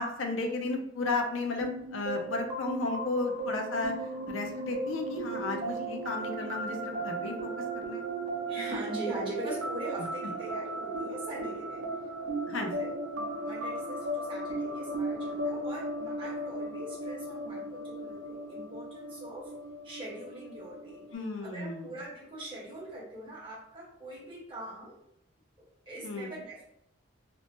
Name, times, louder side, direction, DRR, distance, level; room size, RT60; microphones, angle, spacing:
voice 1, 0.0-3.9 4.3-8.0 12.5-12.7 21.1-21.9 26.0-26.3, left 3 dB, 75° left, 4 dB, 0.5 m, -34 dB
sound 1, 1.6-21.1, right 2 dB, 80° right, 0.6 m, -36 dB
voice 2, 8.5-11.9 12.5-19.5 19.8-21.1 21.4-25.0 25.6-26.7, right 1 dB, 25° right, -6 dB, 1.0 m, -42 dB
2.9 x 2.0 x 2.8 m, 0.76 s
head